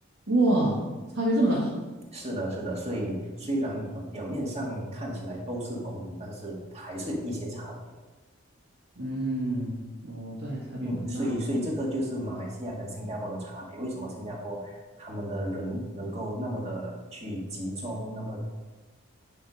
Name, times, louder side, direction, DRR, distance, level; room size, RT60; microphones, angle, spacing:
voice 1, 0.3-0.8 1.1-1.7 9.0-11.3, right 1 dB, 80° right, -7 dB, 2.2 m, -27 dB
voice 2, 2.1-7.9 10.8-18.4, equal, 30° right, -2 dB, 2.0 m, -33 dB
9.8 x 4.9 x 5.2 m, 1.2 s
head